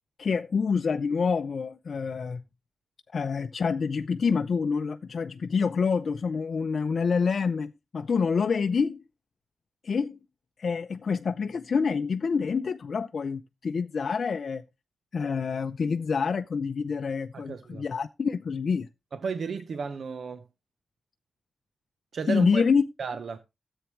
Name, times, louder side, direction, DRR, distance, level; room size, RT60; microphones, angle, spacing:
voice 1, 0.2-2.4 3.1-9.0 9.8-10.2 10.6-14.6 15.1-18.9 22.3-22.8, left 5 dB, 65° left, 0.5 m, -27 dB
voice 2, 17.5-17.8 19.2-20.4 22.1-22.6 23.0-23.4, right 5 dB, 75° right, 0.9 m, -33 dB
13.5 x 8.0 x 3.1 m
cardioid pair, 65°, 0 cm